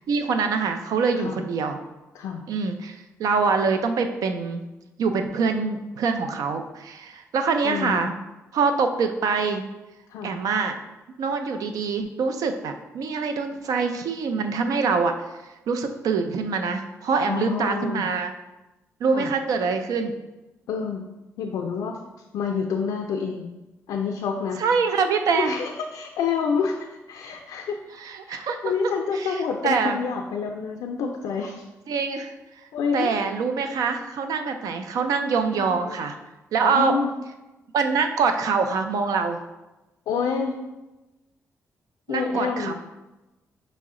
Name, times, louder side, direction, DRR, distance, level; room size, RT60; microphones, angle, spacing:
voice 1, 0.0-1.8 2.5-4.6 5.0-8.1 8.5-9.6 10.2-10.8 11.2-15.1 15.7-18.3 19.0-20.1 24.6-25.5 28.0-28.7 29.1-30.0 31.9-32.3 32.9-36.2 36.5-36.9 37.7-39.4 42.1-42.7, right 5 dB, 80° right, 7 dB, 0.4 m, -24 dB
voice 2, 7.6-8.1 10.1-10.4 17.3-18.1 19.1-19.3 20.7-21.1 21.4-22.0 22.3-23.5 23.9-24.6 25.4-27.8 28.3-31.6 32.7-33.1 35.5-36.0 36.6-37.1 40.1-40.6 42.1-42.7, left 6 dB, 90° left, 2 dB, 0.3 m, -28 dB
5.5 x 2.1 x 3.6 m, 1.0 s
cardioid pair, 85°, 6 cm